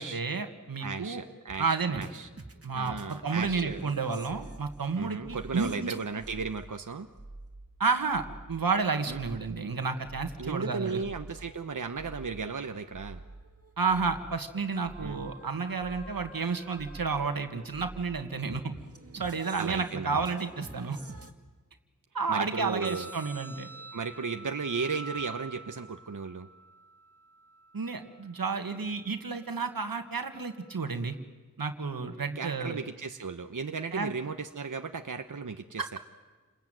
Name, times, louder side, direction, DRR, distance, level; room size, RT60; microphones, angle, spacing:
voice 1, 0.0-1.2 1.6-2.1 2.6-5.9 7.8-11.0 13.8-18.6 19.1-21.0 22.1-23.7 27.7-31.2 31.6-32.8 33.9-34.1 35.8-36.0, right 4 dB, 90° right, 7 dB, 1.9 m, -31 dB
voice 2, 0.8-2.3 2.7-3.9 5.0-7.1 9.1-9.2 10.4-13.2 15.0-15.2 19.6-20.2 22.3-23.1 23.9-26.5 32.3-36.0, right 5 dB, 65° right, 6 dB, 1.1 m, -35 dB
sound 1, 1.5-21.3, right 2 dB, 45° right, 2.2 m, -48 dB
sound 2, 22.8-30.8, right 2 dB, 5° left, 2.4 m, -48 dB
29.5 x 21.0 x 9.2 m, 1.3 s
wide cardioid pair, 60°, 34 cm